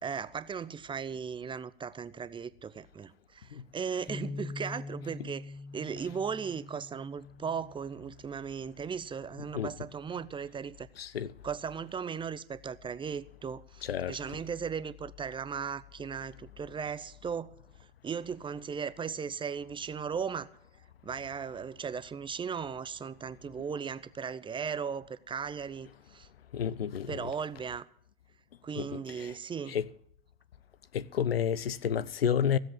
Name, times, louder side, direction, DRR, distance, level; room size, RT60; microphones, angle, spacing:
voice 1, 0.0-10.9 11.4-17.5 18.0-20.5 21.0-26.3 27.1-27.9 28.6-29.8, right 6 dB, 15° right, 0.6 m, -37 dB
Bass guitar, 4.1-10.3, left 3 dB, 15° left, 2.0 m, -45 dB
voice 2, 11.0-11.3 13.8-14.2 26.5-27.3 28.8-29.4 29.7-29.9 30.9-32.6, left 8 dB, 80° left, 0.7 m, -31 dB
15.5 x 7.7 x 9.6 m
figure-of-eight pair, 85°, 29 cm